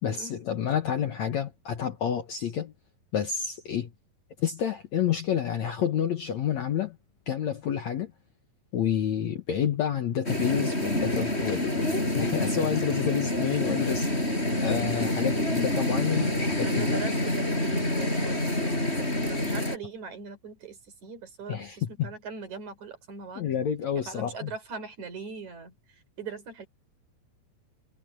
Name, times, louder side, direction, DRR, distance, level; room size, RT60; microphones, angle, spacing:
voice 1, 0.0-2.7 3.1-3.9 4.4-7.0 7.3-8.1 8.7-14.1 14.6-17.0 21.5-22.1 23.4-24.5, left 9 dB, 60° left, 2.1 m, -29 dB
sound 1, 10.2-19.8, left 1 dB, 15° left, 7.7 m, -27 dB
voice 2, 16.6-21.6 22.0-23.5 24.1-25.7 26.2-26.7, right 5 dB, 50° right, 5.5 m, -40 dB
omnidirectional pair, 4.4 m